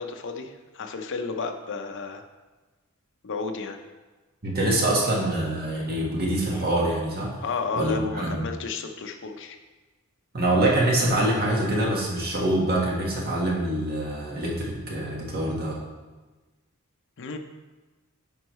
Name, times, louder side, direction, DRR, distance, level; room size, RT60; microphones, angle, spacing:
voice 1, 0.0-2.3 3.2-3.8 7.4-9.6 17.2-17.4, left 4 dB, 60° left, 6 dB, 0.6 m, -32 dB
voice 2, 4.4-7.3 7.8-8.4 10.3-15.8, right 1 dB, 45° right, -2 dB, 1.5 m, -25 dB
9.3 x 5.5 x 3.1 m, 1.2 s
head